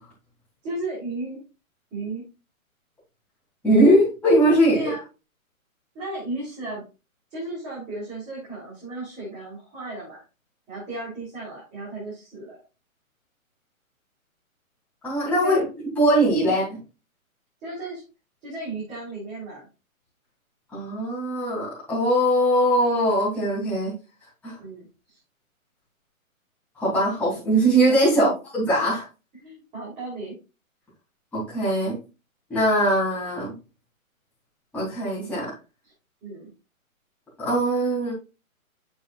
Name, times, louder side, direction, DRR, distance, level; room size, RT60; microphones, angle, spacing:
voice 1, 0.6-1.4 1.9-2.2 4.7-5.0 5.9-6.8 7.3-10.2 10.7-12.6 15.4-15.6 16.4-16.6 17.6-18.0 18.4-19.6 24.6-25.2 28.2-28.4 29.3-30.4 36.2-36.5, right 2 dB, 15° right, -9 dB, 3.5 m, -35 dB
voice 2, 3.6-4.9 15.0-15.6 16.0-16.8 20.7-23.9 24.4-24.5 26.8-29.1 31.3-32.0 32.5-33.5 34.7-35.5 37.4-38.1, right 1 dB, 5° left, -9 dB, 3.0 m, -21 dB
7.5 x 6.8 x 2.5 m, 0.30 s
hypercardioid pair, 160°, 42 cm